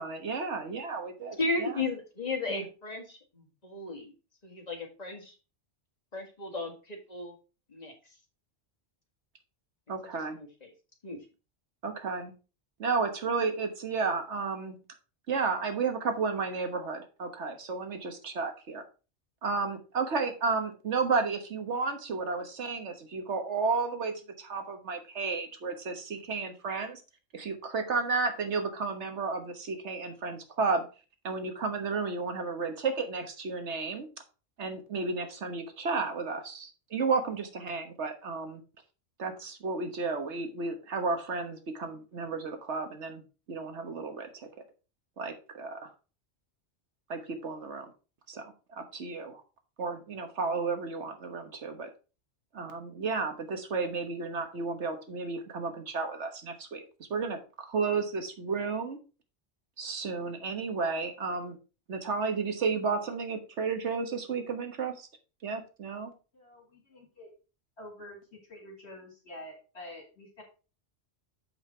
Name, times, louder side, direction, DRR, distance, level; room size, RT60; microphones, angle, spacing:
voice 1, 0.0-1.7 2.5-2.6 9.9-10.4 11.8-12.3 12.8-14.8 15.3-18.8 19.4-27.0 27.3-30.8 31.2-34.1 34.6-38.6 39.2-43.2 43.5-44.3 45.2-45.9 47.1-47.9 48.3-48.4 48.7-49.4 49.8-51.9 52.5-56.8 57.1-59.0 59.8-61.6 61.9-65.1 65.4-66.1, right 4 dB, 75° right, 6 dB, 1.5 m, -32 dB
voice 2, 1.4-4.1 4.4-5.3 6.1-7.3 7.7-7.9 10.4-10.7 11.0-11.2, left 3 dB, 35° left, 1 dB, 1.8 m, -35 dB
voice 3, 66.3-67.3 67.8-70.4, left 1 dB, 65° left, 0 dB, 2.2 m, -47 dB
7.0 x 5.4 x 4.3 m, 0.33 s
omnidirectional pair, 1.2 m